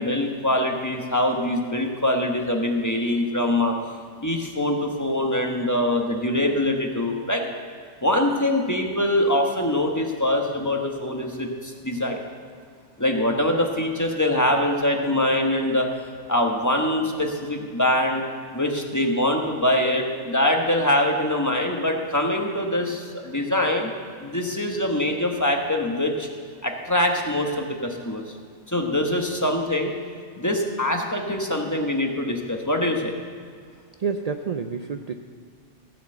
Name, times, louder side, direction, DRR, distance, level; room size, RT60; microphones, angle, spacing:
voice 1, 0.0-3.7 4.2-7.4 8.0-12.2 13.0-15.9 16.3-18.2 18.5-23.9 24.2-26.3 26.6-28.2 28.7-29.9 30.4-33.1, left 1 dB, 15° left, 2 dB, 1.2 m, -23 dB
voice 2, 34.0-35.1, right 5 dB, 60° right, 7 dB, 0.4 m, -28 dB
16.5 x 6.5 x 7.8 m, 2.1 s
omnidirectional pair, 1.3 m